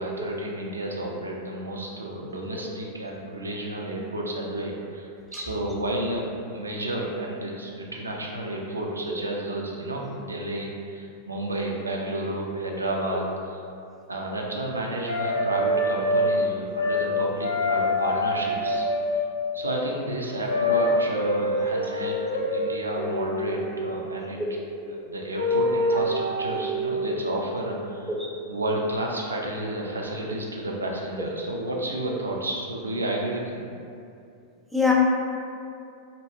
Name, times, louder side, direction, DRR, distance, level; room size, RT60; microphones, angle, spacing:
voice 1, 0.0-13.6 14.1-18.9 19.5-22.2 22.5-24.4 24.9-28.1 28.5-33.6, right 1 dB, 75° right, -1 dB, 0.3 m, -31 dB
sound 1, 15.1-16.3 16.7-17.1 17.4-19.3 20.5-23.9 25.3-27.1, left 1 dB, 80° left, 0.4 m, -25 dB
voice 2, 24.4-24.7 28.1-28.3 34.7-34.9, left 3 dB, 5° right, -4 dB, 0.4 m, -27 dB
2.5 x 2.2 x 2.5 m, 2.5 s
figure-of-eight pair, 90°, 0 cm